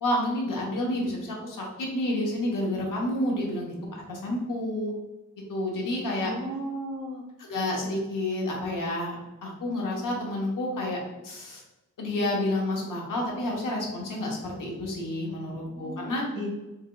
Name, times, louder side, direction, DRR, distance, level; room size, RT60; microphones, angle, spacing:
voice 1, 0.0-4.9 5.5-6.3 7.4-9.2 9.4-11.6 12.0-16.2, left 1 dB, 90° left, -2 dB, 1.0 m, -29 dB
voice 2, 6.2-7.2 15.7-16.5, equal, 75° right, -2 dB, 1.1 m, -35 dB
3.8 x 2.9 x 2.3 m, 1.0 s
wide cardioid pair, 160°, 31 cm